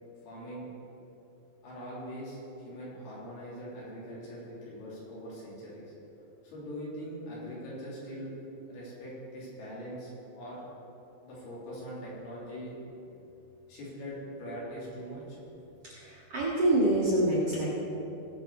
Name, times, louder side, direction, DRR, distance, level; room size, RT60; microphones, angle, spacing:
voice 1, 0.2-0.7 1.6-5.9 6.4-8.3 8.7-10.1 10.4-10.6 11.2-12.8 13.7-15.4, equal, 70° left, -7 dB, 5.1 m, -42 dB
voice 2, 15.9-17.7, right 1 dB, 50° right, -7 dB, 2.2 m, -26 dB
18.5 x 6.2 x 4.8 m, 2.9 s
omnidirectional pair, 4.6 m